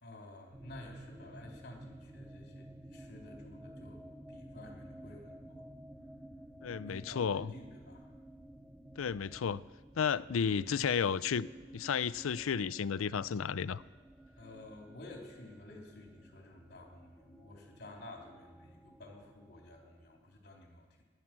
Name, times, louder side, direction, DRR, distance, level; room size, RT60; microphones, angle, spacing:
voice 1, 0.0-5.6 6.9-8.1 14.4-21.0, left 1 dB, 55° left, 0 dB, 3.4 m, -52 dB
sound 1, 0.5-20.4, right 1 dB, 5° right, 0.7 m, -53 dB
voice 2, 6.6-7.5 9.0-9.6 10.0-11.5 11.7-13.8, left 6 dB, 85° left, 18 dB, 0.5 m, -32 dB
18.5 x 11.5 x 6.1 m, 1.3 s
head